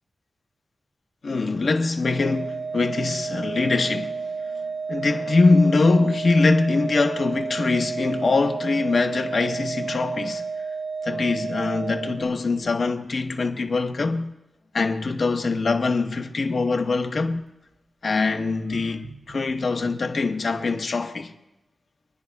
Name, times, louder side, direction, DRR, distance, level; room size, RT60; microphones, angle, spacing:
voice 1, 1.2-4.2 4.9-10.5 11.0-14.3 14.7-17.4 18.0-21.3, left 3 dB, 50° left, 0.8 m, -23 dB
Organ, 2.1-12.7, right 4 dB, 40° right, 1.0 m, -31 dB
sound 1, 17.3-17.8 18.5-20.2, right 4 dB, 85° right, 2.2 m, -47 dB
27.0 x 10.5 x 2.3 m
wide cardioid pair, 170°, 0 cm